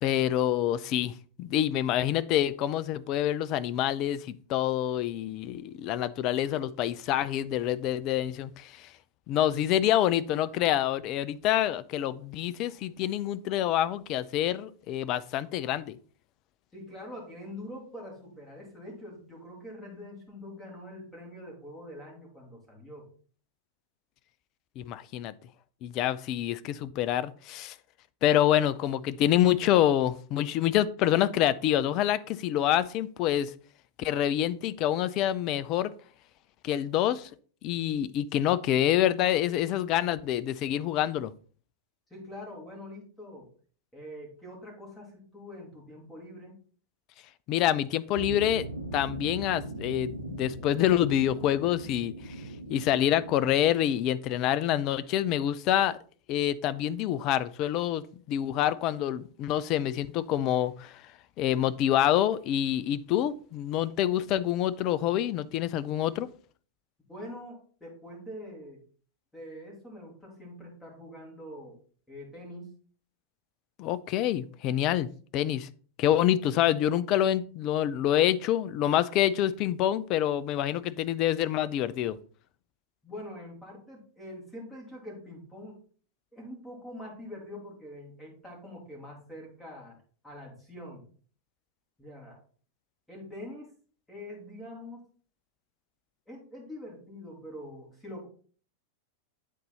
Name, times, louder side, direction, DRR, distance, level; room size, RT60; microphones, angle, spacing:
voice 1, 0.0-8.9 9.3-16.0 24.8-25.3 25.8-27.8 28.2-33.5 34.0-35.9 36.6-37.3 37.6-41.3 47.5-52.1 52.7-56.0 56.3-61.0 61.4-66.3 73.8-75.7 76.0-82.2, left 12 dB, 40° left, 0.4 m, -27 dB
voice 2, 16.7-23.1 42.1-43.5 43.9-46.6 67.1-68.8 69.3-71.8 72.1-72.7 83.0-85.8 86.3-89.9 90.2-91.0 92.0-92.4 93.1-93.7 94.1-95.1 96.3-98.3, left 1 dB, 5° left, 2.7 m, -44 dB
sound 1, 48.1-53.5, right 2 dB, 90° right, 0.8 m, -39 dB
8.2 x 4.0 x 4.2 m
figure-of-eight pair, 90°, 0 cm